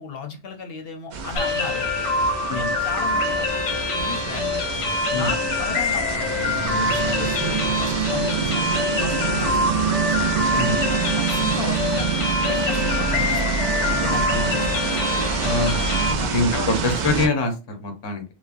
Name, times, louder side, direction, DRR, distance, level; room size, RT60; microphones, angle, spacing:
voice 1, 0.0-1.9 2.5-3.5 4.0-4.5 5.1-9.9 10.4-12.1 12.4-13.6 13.9-14.9 15.4-16.8, left 6 dB, 65° left, 4 dB, 0.7 m, -35 dB
sound 1, 1.1-17.3, right 6 dB, 55° right, 0.5 m, -26 dB
sound 2, 1.4-16.1, left 3 dB, 90° left, 1.1 m, -25 dB
voice 2, 15.5-15.9 16.3-18.2, left 2 dB, 30° left, 5 dB, 0.5 m, -24 dB
3.2 x 2.0 x 2.4 m, 0.29 s
omnidirectional pair, 1.2 m